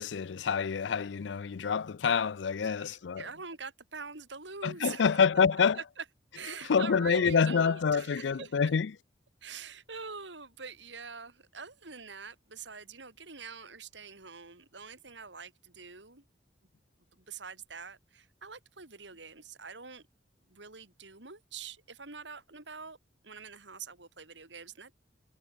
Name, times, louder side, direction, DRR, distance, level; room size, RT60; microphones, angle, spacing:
voice 1, 0.0-3.3 4.6-5.8 6.6-8.9, left 6 dB, 70° left, 0.5 m, -27 dB
voice 2, 2.6-5.1 6.0-6.1 6.3-8.5 9.4-16.2 17.1-20.0 20.5-23.0 23.2-25.0, right 5 dB, 75° right, 3.7 m, -45 dB
head